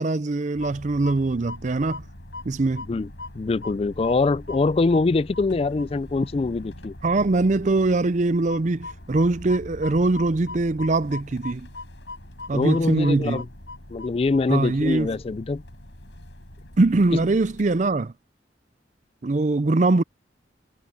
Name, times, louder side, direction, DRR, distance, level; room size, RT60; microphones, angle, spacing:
voice 1, 0.0-2.0 2.4-2.8 7.0-11.7 12.5-13.4 14.5-15.1 16.8-18.1 19.2-20.0, right 2 dB, 40° right, 0.5 m, -22 dB
sound 1, 0.5-18.0, left 2 dB, 80° left, 5.8 m, -41 dB
voice 2, 3.4-6.9 12.5-13.5 13.9-15.6, left 3 dB, 30° left, 0.3 m, -23 dB
head